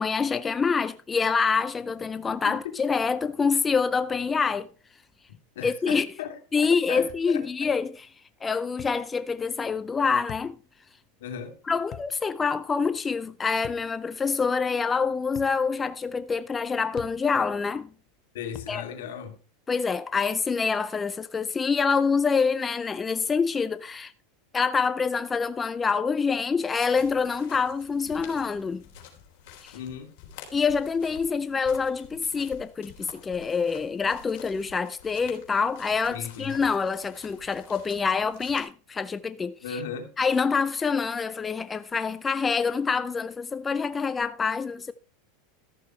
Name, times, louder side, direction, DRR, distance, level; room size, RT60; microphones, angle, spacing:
voice 1, 0.0-4.7 5.6-6.1 6.5-8.1 8.4-10.6 11.7-17.9 18.7-18.8 19.7-24.1 24.5-28.8 29.6-29.7 30.5-39.8 40.2-44.9, left 5 dB, 15° left, 0.5 m, -26 dB
voice 2, 2.4-2.8 5.5-7.7 11.2-11.6 18.3-19.4 29.7-30.1 36.1-36.5 39.6-40.1, left 7 dB, 80° left, 2.7 m, -37 dB
sound 1, 7.1-7.3 8.8-9.0 10.3-10.5 11.9-12.2 13.6-13.9 15.4-15.6 17.0-17.2 18.6-18.8, left 11 dB, 40° left, 1.1 m, -42 dB
sound 2, 26.8-38.6, left 8 dB, 60° left, 3.6 m, -49 dB
13.5 x 7.0 x 4.5 m
supercardioid pair, 130°, 0 cm